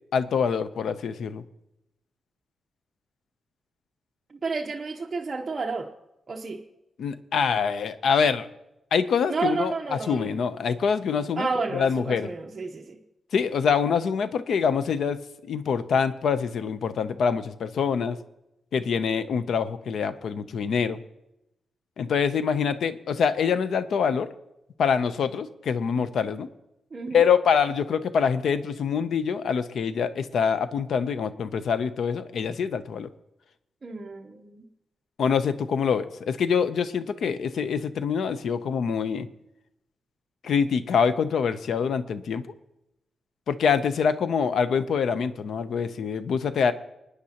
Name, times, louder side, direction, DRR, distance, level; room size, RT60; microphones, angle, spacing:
voice 1, 0.1-1.4 7.0-8.5 8.9-11.5 11.7-12.3 13.3-18.2 18.7-21.0 22.0-24.3 24.8-26.5 27.1-33.1 35.2-39.3 40.4-42.5 43.5-46.7, left 6 dB, 70° left, 12 dB, 0.6 m, -25 dB
voice 2, 4.3-5.9 6.3-6.6 9.3-10.3 11.4-13.0 26.9-27.3 33.8-34.6, right 4 dB, 30° right, -1 dB, 0.8 m, -31 dB
27.5 x 9.5 x 2.9 m, 0.90 s
wide cardioid pair, 140°, 0 cm